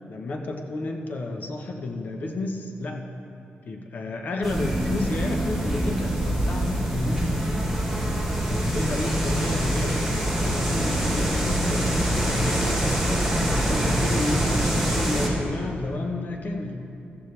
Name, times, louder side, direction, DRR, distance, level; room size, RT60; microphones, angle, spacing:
voice 1, 0.1-3.0 3.6-7.7 8.5-16.8, left 2 dB, 50° left, 2 dB, 1.2 m, -31 dB
sound 1, 4.4-15.3, right 1 dB, ahead, 2.0 m, -25 dB
Bowed string instrument, 10.4-14.1, left 3 dB, 70° left, 0.7 m, -41 dB
15.5 x 14.0 x 3.4 m, 2.6 s
wide cardioid pair, 160°, 4 cm